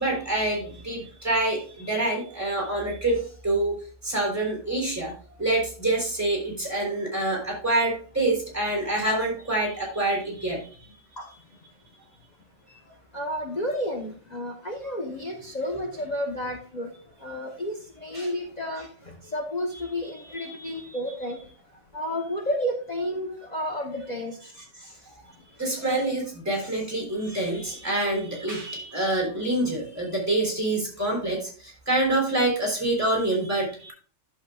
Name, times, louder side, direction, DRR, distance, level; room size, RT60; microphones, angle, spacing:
voice 1, 0.0-3.7 4.0-5.1 5.4-10.9 18.1-18.3 20.3-20.7 24.8-24.9 25.6-33.9, right 2 dB, 10° right, -2 dB, 3.9 m, -26 dB
voice 2, 13.1-16.9 17.2-21.5 21.9-24.4, equal, 35° left, 1 dB, 1.1 m, -31 dB
11.0 x 7.1 x 2.4 m, 0.41 s
omnidirectional pair, 1.4 m